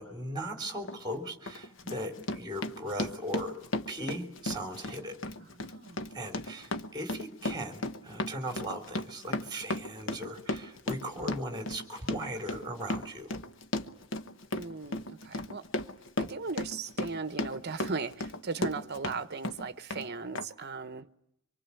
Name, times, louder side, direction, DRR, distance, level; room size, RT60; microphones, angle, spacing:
voice 1, 0.0-3.6 3.9-5.2 6.1-13.4, equal, 20° right, 3.4 m, -38 dB
Run, 0.8-1.0 1.5-19.2 19.4-20.1 20.3-20.4, left 1 dB, 60° left, 1.1 m, -35 dB
voice 2, 5.6-6.1 14.5-15.6 16.2-21.1, right 4 dB, 50° right, 1.0 m, -38 dB
25.0 x 23.0 x 8.4 m
head